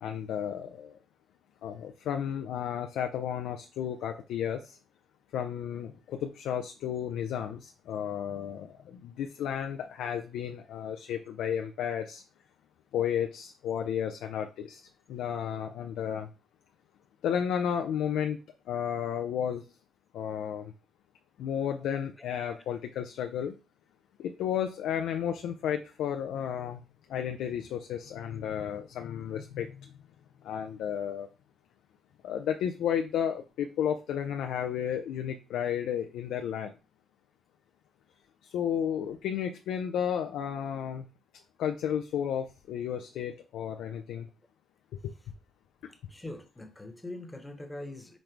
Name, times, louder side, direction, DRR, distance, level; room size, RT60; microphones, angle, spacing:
voice 1, 0.0-0.9 1.6-4.6 5.3-8.7 9.0-12.2 12.9-14.8 15.1-16.3 17.2-18.4 18.7-19.6 20.1-20.6 21.4-23.5 24.2-26.8 27.1-29.7 30.4-31.3 32.2-36.7 38.5-41.0 41.6-44.3, left 9 dB, 80° left, 5 dB, 0.3 m, -32 dB
voice 2, 45.9-48.2, left 1 dB, 15° left, 6 dB, 0.9 m, -43 dB
5.1 x 2.1 x 4.5 m, 0.32 s
cardioid pair, 90°, 0 cm